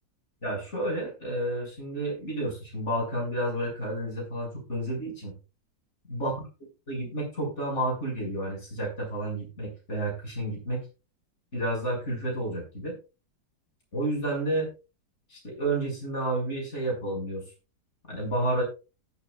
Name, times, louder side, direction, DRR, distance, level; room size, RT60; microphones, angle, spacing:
voice 1, 0.4-5.3 6.1-6.5 6.9-10.8 11.5-12.9 13.9-14.7 15.3-17.4 18.1-18.6, right 1 dB, 40° left, -2 dB, 7.3 m, -30 dB
18.0 x 8.1 x 2.5 m, 0.31 s
omnidirectional pair, 1.8 m